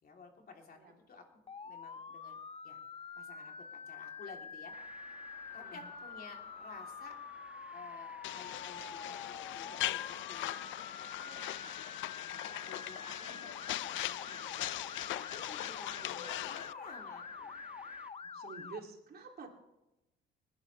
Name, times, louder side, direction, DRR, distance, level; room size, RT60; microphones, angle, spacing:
voice 1, 0.0-0.8 1.1-2.4 2.6-2.8 3.2-4.7 5.5-7.2 7.7-10.6 11.2-11.8 12.3-14.7 15.2-17.6, left 4 dB, 50° left, 1 dB, 3.5 m, -53 dB
Motor vehicle (road) / Siren, 1.5-18.8, left 5 dB, 30° left, 0.6 m, -47 dB
sound 1, 4.7-18.1, right 1 dB, 5° right, 1.9 m, -59 dB
sound 2, 8.2-16.7, left 15 dB, 75° left, 0.4 m, -40 dB
voice 2, 13.1-13.5 15.9-16.2 18.2-19.5, right 4 dB, 50° right, 1 dB, 2.9 m, -50 dB
27.0 x 11.0 x 3.4 m, 0.95 s
cardioid pair, 90°, 20 cm